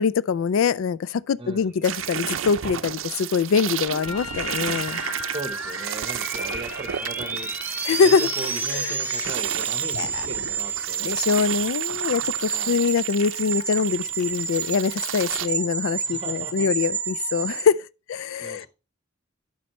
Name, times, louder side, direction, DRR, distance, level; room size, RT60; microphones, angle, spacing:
voice 1, 0.0-5.0 7.8-8.3 8.7-8.9 10.0-10.1 11.0-17.8 18.1-18.7, left 6 dB, 65° left, 0.3 m, -23 dB
voice 2, 1.4-1.7 5.3-11.5 12.2-12.8 16.0-16.7 18.4-18.7, right 2 dB, 25° right, 1.0 m, -38 dB
sound 1, 1.8-15.5, right 9 dB, 65° right, 0.5 m, -33 dB
Trumpet, 4.0-8.5, left 4 dB, 85° left, 2.0 m, -39 dB
sound 2, 4.7-17.6, right 6 dB, 10° right, 0.6 m, -30 dB
12.0 x 5.5 x 3.1 m
head